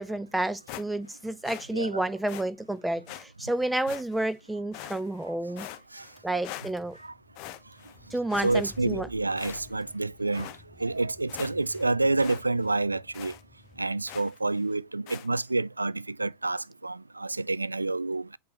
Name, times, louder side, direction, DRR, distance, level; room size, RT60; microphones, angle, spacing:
voice 1, 0.0-5.7 6.2-7.0 8.1-9.1, right 1 dB, 5° right, 0.4 m, -30 dB
sound 1, 0.7-1.2 1.4-1.7 2.3-2.5 3.1-3.2 3.9-4.3 4.7-5.3 5.6-6.2 6.4-7.0 7.4-8.0 8.3-9.0 9.4-9.9 10.3-10.6 11.0-11.1 11.3-11.9 12.2-12.4 12.7-12.8 13.1-13.4 14.1-14.4 15.1-15.3, left 14 dB, 45° left, 0.7 m, -43 dB
Car / Engine, 5.9-14.3, left 1 dB, 20° left, 1.3 m, -53 dB
voice 2, 8.3-10.5 10.8-13.3 13.8-18.4, right 2 dB, 80° right, 0.3 m, -28 dB
8.3 x 4.0 x 2.9 m
figure-of-eight pair, 90°, 0 cm